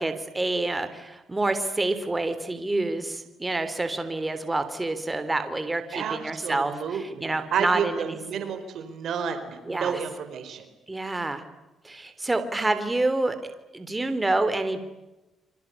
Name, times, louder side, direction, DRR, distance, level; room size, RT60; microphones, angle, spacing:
voice 1, 0.0-8.2 9.7-10.0 10.9-11.4 11.8-14.8, right 2 dB, 15° right, 10 dB, 3.4 m, -28 dB
voice 2, 5.9-10.7, right 7 dB, 70° right, 9 dB, 4.6 m, -31 dB
28.0 x 25.5 x 8.4 m, 1.0 s
cardioid pair, 90°, 0 cm